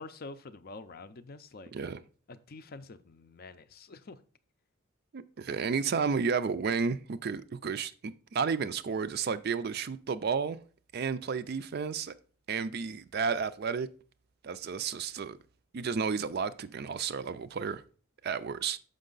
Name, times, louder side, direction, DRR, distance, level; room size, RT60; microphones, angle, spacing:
voice 1, 0.0-1.7 2.3-4.2, left 3 dB, 45° left, 0.5 m, -47 dB
voice 2, 5.1-10.6 10.9-12.1 12.5-13.9 14.4-15.4 15.7-17.8 18.2-18.8, right 5 dB, 45° right, 0.3 m, -32 dB
6.4 x 5.3 x 3.9 m
head